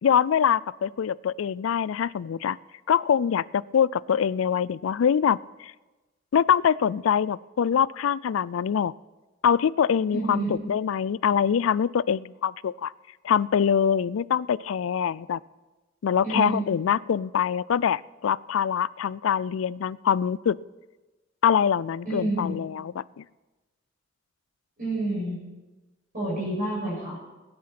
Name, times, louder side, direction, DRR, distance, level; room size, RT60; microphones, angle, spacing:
voice 1, 0.0-2.6 2.9-5.7 6.3-8.9 9.4-12.9 13.2-15.4 16.0-20.6 21.4-23.2, left 8 dB, 90° left, 22 dB, 0.4 m, -24 dB
voice 2, 10.1-10.5 16.2-16.6 22.0-22.6 24.8-25.4 26.1-27.2, right 2 dB, 45° right, -4 dB, 6.3 m, -28 dB
17.0 x 10.5 x 5.9 m, 1.2 s
head